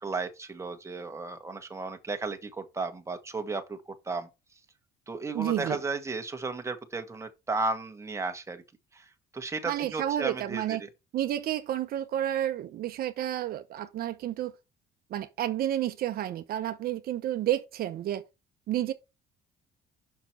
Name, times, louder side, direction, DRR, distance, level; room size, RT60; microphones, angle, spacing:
voice 1, 0.0-4.3 5.1-8.6 8.9-10.9, right 3 dB, 15° right, 1.5 m, -34 dB
voice 2, 5.3-5.8 9.7-10.8 11.1-14.5 15.1-18.2 18.7-18.9, right 12 dB, 65° right, 0.8 m, -30 dB
6.0 x 5.9 x 4.7 m
cardioid pair, 110°, 17 cm